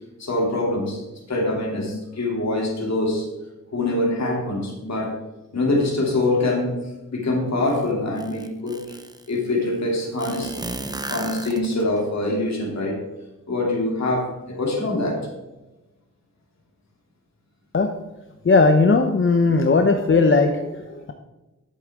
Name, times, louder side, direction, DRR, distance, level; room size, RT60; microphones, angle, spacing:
voice 1, 0.2-1.0 1.3-3.3 3.7-5.2 5.5-6.8 7.1-9.0 9.3-10.6 11.0-13.0 13.5-15.2, left 2 dB, 55° left, -1 dB, 3.0 m, -24 dB
sound 1, 7.7-7.8 8.2-9.3 10.2-12.0, right 2 dB, 10° right, 0.7 m, -34 dB
voice 2, 18.4-21.1, left 3 dB, 40° left, 5 dB, 0.7 m, -18 dB
11.0 x 8.3 x 3.7 m, 1.1 s
wide cardioid pair, 115°, 32 cm